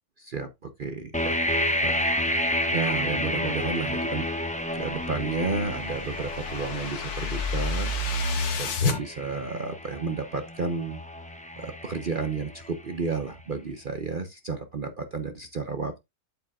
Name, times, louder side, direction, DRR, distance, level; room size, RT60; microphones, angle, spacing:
voice 1, 0.2-1.4 1.8-2.4 2.7-4.3 4.7-11.0 11.6-16.1, right 4 dB, 40° right, 0.8 m, -32 dB
sound 1, 1.1-12.9, left 1 dB, 5° left, 1.0 m, -30 dB
sound 2, 4.9-9.0, left 3 dB, 75° left, 1.9 m, -29 dB
8.6 x 8.3 x 2.4 m
omnidirectional pair, 1.6 m